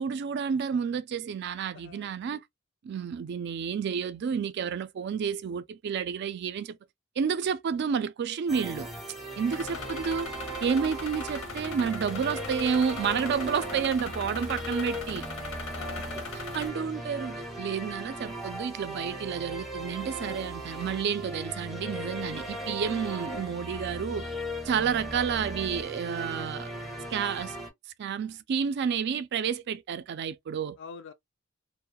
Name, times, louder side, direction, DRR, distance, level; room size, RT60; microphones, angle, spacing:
voice 1, 0.0-2.4 2.8-6.8 7.2-8.9 9.4-10.3 10.6-15.2 16.5-24.3 24.6-26.7 27.1-27.6 28.0-30.8, right 6 dB, 55° right, 0.3 m, -30 dB
voice 2, 1.7-2.1 9.6-9.9 15.7-16.6 30.8-31.1, left 6 dB, 65° left, 0.4 m, -45 dB
sound 1, 8.5-27.7, right 1 dB, ahead, 0.6 m, -38 dB
sound 2, 9.5-16.7, left 4 dB, 90° left, 0.8 m, -40 dB
2.2 x 2.1 x 2.6 m
head